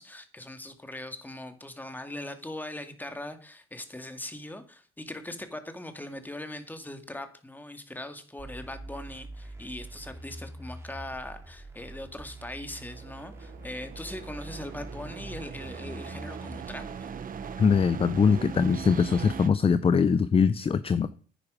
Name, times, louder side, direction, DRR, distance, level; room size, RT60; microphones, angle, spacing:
voice 1, 0.0-17.1, left 1 dB, 10° left, 7 dB, 2.1 m, -40 dB
sound 1, 8.4-19.4, right 2 dB, 15° right, 2.9 m, -45 dB
sound 2, 12.9-19.5, right 7 dB, 45° right, 1.1 m, -40 dB
voice 2, 17.6-21.2, left 6 dB, 30° left, 14 dB, 0.6 m, -22 dB
10.0 x 9.5 x 5.1 m, 0.40 s
supercardioid pair, 80°, 19 cm